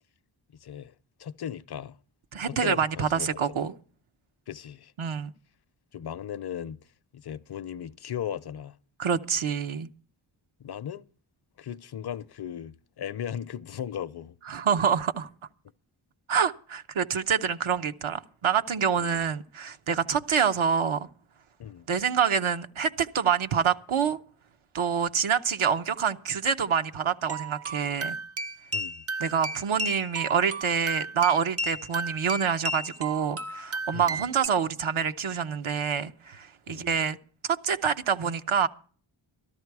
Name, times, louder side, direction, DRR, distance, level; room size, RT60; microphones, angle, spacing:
voice 1, 0.6-0.9 1.2-2.0 2.4-3.6 4.5-4.9 5.9-6.8 7.1-8.8 10.6-11.1 11.6-14.4 19.0-19.3 21.6-21.9 28.7-29.0 33.9-34.2 36.7-36.9, left 9 dB, 55° left, 0.5 m, -37 dB
voice 2, 2.3-3.7 5.0-5.3 9.0-9.9 14.5-15.3 16.3-21.1 21.9-24.2 24.7-28.2 29.2-37.2 37.5-38.7, right 7 dB, 80° right, 0.9 m, -26 dB
sound 1, 27.3-34.5, right 2 dB, 30° right, 0.5 m, -34 dB
13.0 x 13.0 x 4.7 m
wide cardioid pair, 95°, 48 cm